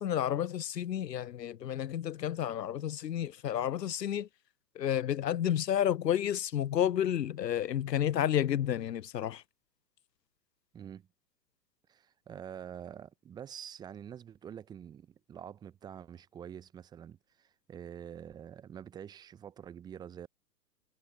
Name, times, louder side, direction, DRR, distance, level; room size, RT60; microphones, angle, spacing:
voice 1, 0.0-4.3 4.8-9.4, left 10 dB, 85° left, 0.6 m, -31 dB
voice 2, 10.7-11.1 11.9-20.3, right 9 dB, 10° right, 0.6 m, -46 dB
figure-of-eight pair, 110°, 48 cm